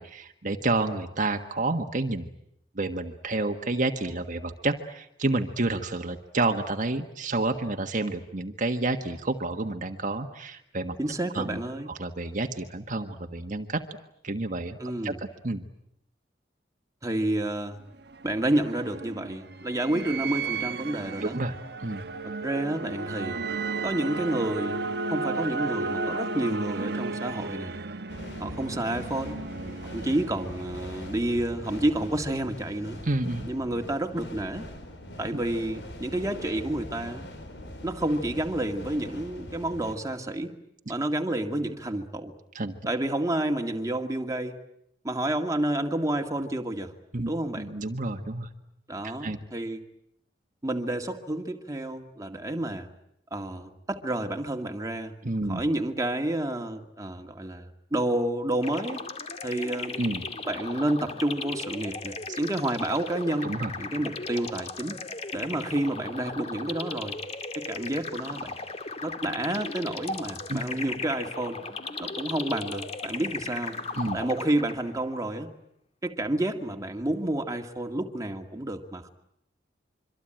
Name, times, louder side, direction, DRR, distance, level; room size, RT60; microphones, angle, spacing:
voice 1, 0.0-2.3 2.7-11.0 11.3-11.6 11.9-13.8 14.2-14.8 15.0-15.6 21.2-22.0 33.0-33.5 35.3-35.4 42.5-42.7 47.1-47.3 47.6-48.5 49.0-49.4 55.2-55.6 60.0-60.2 62.3-62.4 63.4-63.7 70.5-70.6 73.9-74.2, right 2 dB, 45° right, 5 dB, 1.5 m, -29 dB
voice 2, 11.0-11.9 14.8-15.2 17.0-17.8 18.2-21.4 22.4-23.4 23.8-24.8 25.1-27.8 28.4-29.4 29.9-33.0 33.5-34.7 35.2-37.2 37.8-40.5 40.9-42.3 42.9-44.6 45.0-46.9 47.3-47.7 48.9-49.8 50.6-52.9 53.3-55.2 55.5-59.0 59.4-60.0 60.5-63.5 63.8-65.0 65.3-67.2 67.6-68.5 69.0-71.6 72.0-73.8 74.1-75.5 76.0-79.1, right 1 dB, 20° right, 4 dB, 2.1 m, -29 dB
sound 1, 17.8-31.5, right 3 dB, 65° right, 1.4 m, -34 dB
sound 2, 28.1-39.9, left 1 dB, 75° left, 4.9 m, -42 dB
sound 3, 58.6-75.0, left 3 dB, 35° left, 2.2 m, -37 dB
26.0 x 24.5 x 9.1 m, 0.78 s
head